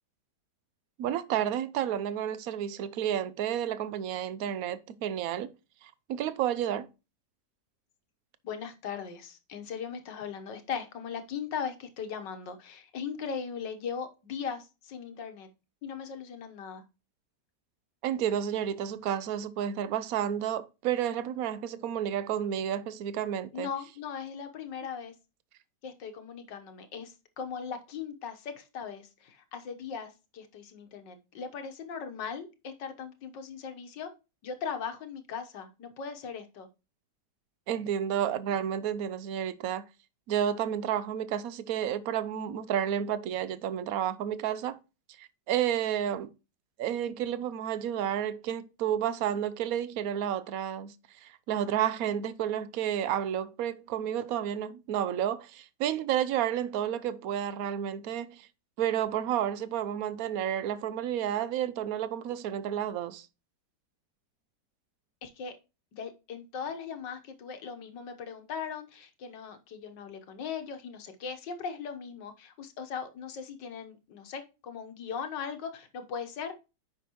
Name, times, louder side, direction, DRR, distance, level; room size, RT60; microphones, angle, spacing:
voice 1, 1.0-5.5 5.8-6.9 18.0-23.7 37.7-39.9 40.3-44.8 45.2-46.3 46.8-58.5 58.8-63.3, right 10 dB, 65° right, 1.1 m, -31 dB
voice 2, 8.4-15.5 15.8-16.8 23.5-25.2 25.8-34.1 34.4-36.7 65.2-65.5 65.9-76.5, left 6 dB, 90° left, 1.8 m, -39 dB
9.2 x 5.8 x 3.0 m
omnidirectional pair, 1.9 m